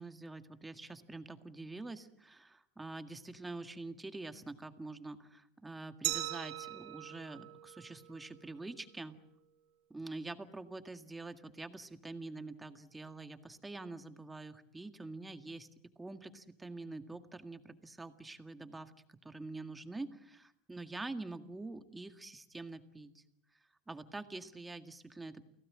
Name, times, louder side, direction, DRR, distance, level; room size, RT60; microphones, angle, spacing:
voice 1, 0.0-9.2 9.9-15.7 16.0-18.9 19.2-23.2 23.9-25.4, right 2 dB, 10° right, 8 dB, 1.9 m, -46 dB
Glass, 6.0-8.8, right 17 dB, 65° right, 4.4 m, -41 dB
29.5 x 17.5 x 8.7 m, 0.76 s
supercardioid pair, 130°, 0 cm